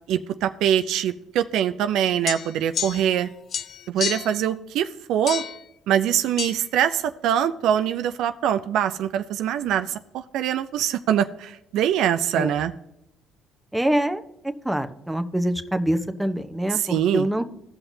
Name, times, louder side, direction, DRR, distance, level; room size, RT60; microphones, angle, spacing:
voice 1, 0.1-3.3 3.9-5.4 5.9-12.7 16.7-17.3, right 10 dB, 70° right, 10 dB, 0.4 m, -23 dB
sound 1, 2.3-3.2 3.5-4.4 5.3-5.6 6.4-6.5, left 8 dB, 55° left, 0.5 m, -30 dB
voice 2, 13.7-14.2 14.6-16.8 17.1-17.4, right 1 dB, 5° right, 7 dB, 0.9 m, -24 dB
16.0 x 5.8 x 2.7 m, 0.81 s
supercardioid pair, 65°, 0 cm